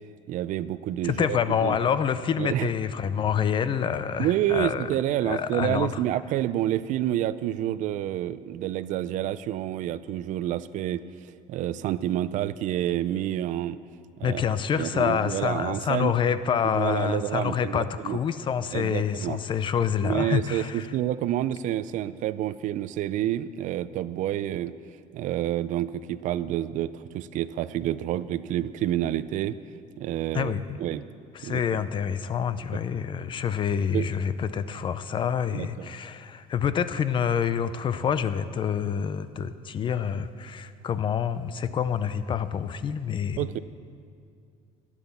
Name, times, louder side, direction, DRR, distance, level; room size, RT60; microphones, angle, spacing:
voice 1, 0.3-1.8 2.4-2.7 4.2-11.0 11.5-13.8 14.2-14.4 14.8-16.1 16.8-18.2 18.7-19.4 20.0-24.7 25.1-29.6 30.0-30.5 30.8-31.1 31.4-31.6 33.9-34.1 35.5-35.9 43.4-43.6, right 12 dB, 55° right, 16 dB, 0.5 m, -28 dB
voice 2, 1.0-4.9 5.2-6.0 14.2-20.9 30.3-30.8 31.3-43.5, left 7 dB, 35° left, 13 dB, 0.5 m, -27 dB
12.5 x 9.9 x 7.0 m, 2.3 s
cardioid pair, 140°, 15 cm